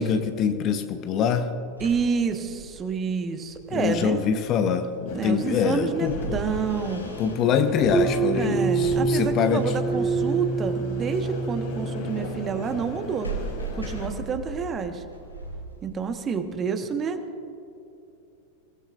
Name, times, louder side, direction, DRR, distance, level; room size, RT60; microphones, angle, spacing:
voice 1, 0.0-1.5 3.7-6.3 7.2-9.6, left 7 dB, 35° left, 8 dB, 1.1 m, -24 dB
sound 1, 1.8-16.2, right 2 dB, 85° left, 3.2 m, -39 dB
voice 2, 1.8-4.2 5.1-7.1 8.3-13.3 13.7-15.0 15.8-17.2, right 6 dB, 25° right, 7 dB, 1.4 m, -28 dB
sound 2, 5.1-14.1, left 4 dB, 50° left, 3.3 m, -38 dB
sound 3, 7.9-13.1, right 4 dB, 5° right, 0.9 m, -26 dB
28.5 x 18.5 x 2.6 m, 2.8 s
figure-of-eight pair, 90°, 0 cm